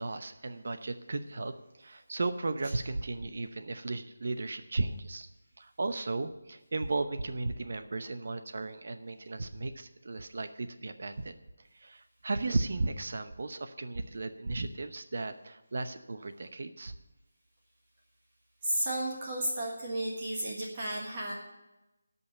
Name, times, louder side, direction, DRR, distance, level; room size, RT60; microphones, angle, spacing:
voice 1, 0.0-5.3 5.6-11.4 11.7-16.9, right 3 dB, 45° right, 9 dB, 0.8 m, -35 dB
voice 2, 18.6-21.3, right 1 dB, 20° right, -3 dB, 1.5 m, -33 dB
12.0 x 5.6 x 9.1 m, 1.0 s
figure-of-eight pair, 180°, 0 cm